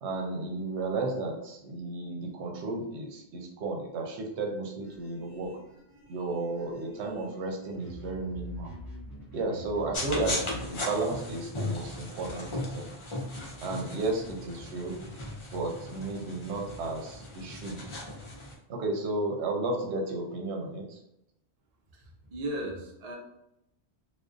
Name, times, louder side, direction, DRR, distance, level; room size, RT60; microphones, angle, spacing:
voice 1, 0.0-5.6 6.1-8.7 9.3-12.9 13.6-15.0 15.5-18.0 18.7-21.0, right 2 dB, 80° right, 1 dB, 0.8 m, -33 dB
sound 1, 4.8-10.7, equal, 20° right, 1.0 m, -45 dB
sound 2, 9.9-18.5, left 1 dB, 40° left, 0.4 m, -37 dB
voice 2, 21.9-23.2, right 1 dB, 50° right, -1 dB, 0.5 m, -36 dB
2.5 x 2.1 x 2.4 m, 0.82 s
omnidirectional pair, 1.1 m